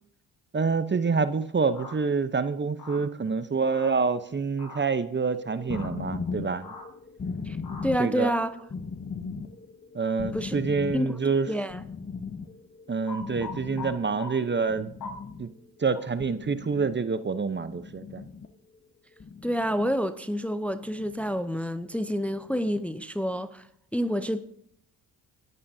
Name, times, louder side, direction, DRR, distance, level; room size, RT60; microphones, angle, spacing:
voice 1, 0.5-6.7 8.0-8.3 9.9-11.5 12.9-14.9 15.4-15.5 15.8-18.2, right 4 dB, 25° right, 0.9 m, -27 dB
sound 1, 1.7-1.9 2.8-3.0 3.7-3.9 4.6-4.8 5.7-5.9 6.6-6.8 7.6-7.8 13.1-13.9 14.2-14.3 15.0-15.1 16.0-16.1, left 4 dB, 60° left, 6.5 m, -40 dB
sound 2, 5.4-14.2 14.5-15.6 16.2-17.0 17.7-18.5 19.2-20.0 20.7-21.5 22.2-22.8, left 5 dB, 25° left, 1.1 m, -38 dB
voice 2, 7.8-8.5 10.3-10.6 10.9-11.1 11.5-11.8 19.4-23.7 23.9-24.4, equal, 5° left, 0.7 m, -28 dB
29.5 x 11.0 x 2.8 m
supercardioid pair, 60°, 41 cm